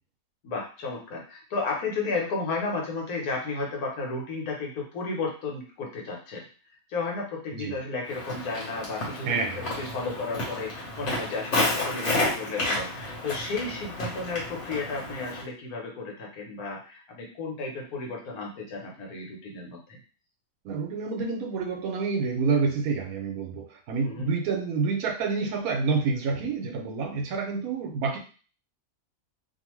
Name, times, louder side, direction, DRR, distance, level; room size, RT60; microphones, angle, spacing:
voice 1, 0.4-6.4 6.9-20.0 24.0-24.3, left 3 dB, 80° left, -1 dB, 1.4 m, -33 dB
Walk footsteps, 8.1-15.4, left 2 dB, 55° left, 1.3 m, -31 dB
voice 2, 9.3-9.7 20.6-28.2, right 4 dB, 75° right, 3 dB, 1.1 m, -28 dB
2.7 x 2.5 x 3.0 m, 0.38 s
omnidirectional pair, 1.5 m